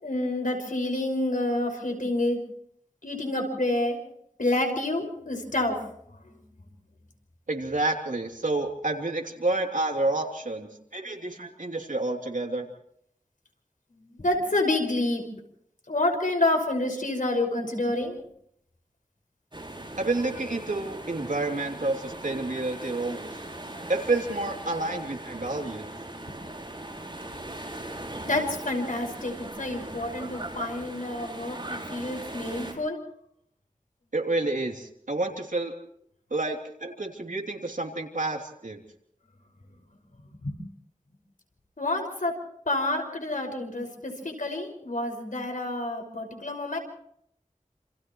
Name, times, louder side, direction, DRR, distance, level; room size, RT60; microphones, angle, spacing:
voice 1, 0.0-2.4 3.0-4.0 4.4-6.4 13.9-15.4 15.9-18.2 26.3-26.4 26.8-26.9 28.2-33.0 40.3-40.6 41.8-42.4 42.7-46.8, left 2 dB, 80° left, 3 dB, 5.8 m, -28 dB
voice 2, 7.5-12.6 20.0-23.4 23.9-25.9 34.1-35.7 36.3-38.8, right 2 dB, 75° right, 2 dB, 3.1 m, -29 dB
sound 1, 19.5-32.7, right 1 dB, 35° right, 5.9 m, -39 dB
29.0 x 28.5 x 3.2 m, 0.71 s
wide cardioid pair, 60°, 14 cm